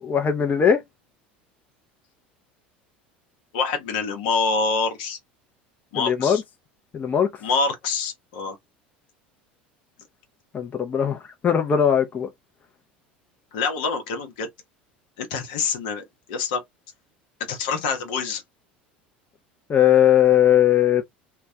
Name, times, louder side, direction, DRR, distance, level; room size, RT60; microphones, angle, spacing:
voice 1, 0.0-0.8 6.0-6.4 6.9-7.3 10.5-11.2 11.4-12.3 19.7-21.0, left 9 dB, 30° left, 0.5 m, -19 dB
voice 2, 3.5-5.2 5.9-6.4 7.4-8.6 13.5-14.5 15.2-16.0 16.3-16.6 17.5-18.4, left 4 dB, 70° left, 0.8 m, -26 dB
2.2 x 2.2 x 2.6 m
hypercardioid pair, 80°, 5 cm